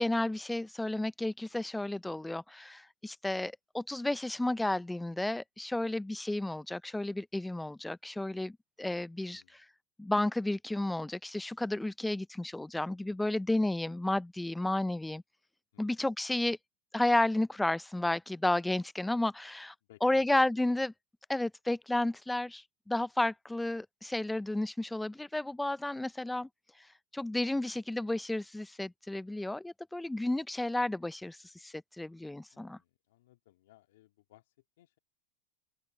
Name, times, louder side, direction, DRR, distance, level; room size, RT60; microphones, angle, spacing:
voice 1, 0.0-9.6 10.0-15.2 15.8-16.6 16.9-19.7 20.0-20.9 21.3-26.5 27.1-32.8, left 1 dB, 5° left, 0.5 m, -32 dB
voice 2, 9.2-9.6 15.7-16.0 19.9-20.5 32.5-35.0, left 15 dB, 75° left, 2.6 m, -62 dB
open air
hypercardioid pair, 110°, 0 cm